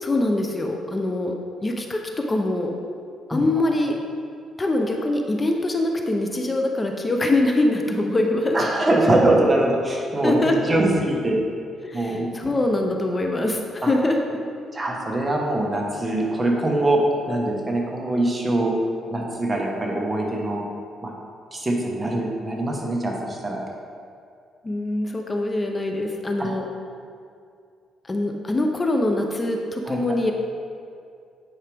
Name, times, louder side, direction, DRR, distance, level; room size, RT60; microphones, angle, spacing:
voice 1, 0.0-1.3 1.6-2.0 2.3-2.7 3.3-4.0 4.6-8.6 10.2-10.5 11.8-14.4 24.6-26.6 28.0-30.3, left 2 dB, 25° left, 3 dB, 0.7 m, -23 dB
voice 2, 3.3-3.6 8.5-11.4 11.9-12.3 13.8-13.9 14.7-17.0 17.3-18.7 19.1-20.6 21.0-21.1 21.5-23.6 26.4-26.5 29.9-30.0, right 1 dB, 20° right, -1 dB, 1.3 m, -23 dB
9.5 x 4.7 x 3.5 m, 2.3 s
cardioid pair, 95°, 0 cm